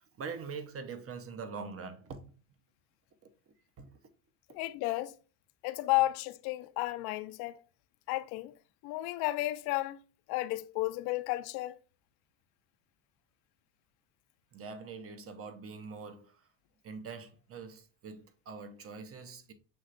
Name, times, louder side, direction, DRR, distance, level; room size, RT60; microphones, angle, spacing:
voice 1, 0.2-2.3 3.8-3.9 14.5-16.4 16.8-19.5, right 5 dB, 35° right, 0.8 m, -43 dB
voice 2, 4.5-5.1 5.6-7.6 8.1-8.5 8.8-10.0 10.3-11.8, left 18 dB, 70° left, 0.6 m, -32 dB
6.2 x 3.3 x 2.5 m
supercardioid pair, 90°, 40 cm